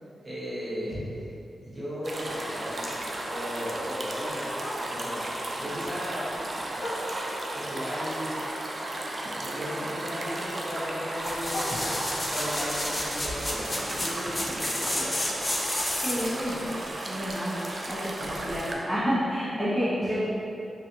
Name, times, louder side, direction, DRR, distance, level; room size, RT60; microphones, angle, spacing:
voice 1, 0.2-1.3 1.6-7.2 7.5-8.4 9.2-11.9 12.3-15.2 20.0-20.2, equal, 35° right, -10 dB, 1.1 m, -36 dB
sound 1, 2.0-18.7, right 1 dB, 50° right, 0.3 m, -34 dB
Bark, 4.5-5.2 5.6-7.5 8.0-9.8 10.1-12.4 12.8-16.8 17.1-17.2 17.5-17.9 18.3-18.4 18.8-18.9 19.4-19.5, left 1 dB, 65° left, 1.0 m, -44 dB
sound 2, 11.2-16.4 16.9-17.0, left 1 dB, 25° left, 0.4 m, -31 dB
voice 2, 16.0-16.6 17.1-17.6 17.8-20.2, equal, ahead, -12 dB, 0.9 m, -29 dB
2.6 x 2.3 x 2.7 m, 2.7 s
cardioid pair, 55°, 0 cm